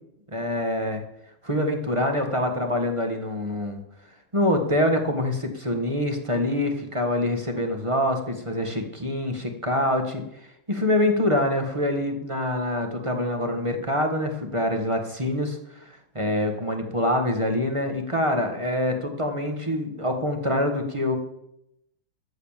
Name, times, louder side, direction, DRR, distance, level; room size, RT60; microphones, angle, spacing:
voice 1, 0.3-1.0 1.4-3.8 4.3-10.2 10.7-21.2, left 1 dB, 15° right, 4 dB, 1.4 m, -25 dB
13.5 x 7.4 x 7.3 m, 0.80 s
omnidirectional pair, 2.2 m